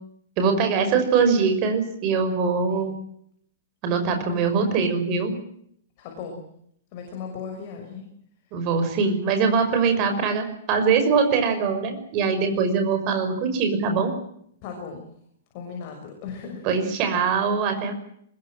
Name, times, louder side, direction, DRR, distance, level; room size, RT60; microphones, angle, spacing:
voice 1, 0.4-3.0 3.8-5.3 8.5-14.1 16.6-17.9, right 5 dB, 25° right, 6 dB, 5.9 m, -22 dB
voice 2, 6.0-6.4 6.9-8.1 8.5-8.6 14.6-15.1 15.5-16.9, left 6 dB, 30° left, 2 dB, 6.5 m, -37 dB
24.5 x 22.0 x 7.7 m, 0.70 s
hypercardioid pair, 170°, 0 cm